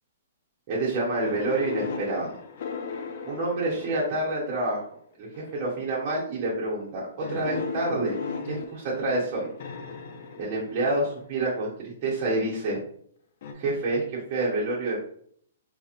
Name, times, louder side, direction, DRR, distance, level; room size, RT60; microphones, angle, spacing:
voice 1, 0.7-2.3 3.2-4.8 5.2-8.2 8.5-9.5 10.4-12.8 13.5-15.0, right 2 dB, 30° right, -7 dB, 0.8 m, -28 dB
sound 1, 1.2-4.6 5.3-5.8 7.2-11.3 13.4-13.5, left 6 dB, 45° left, 0.4 m, -37 dB
4.0 x 2.8 x 2.5 m, 0.62 s
hypercardioid pair, 170°, 0 cm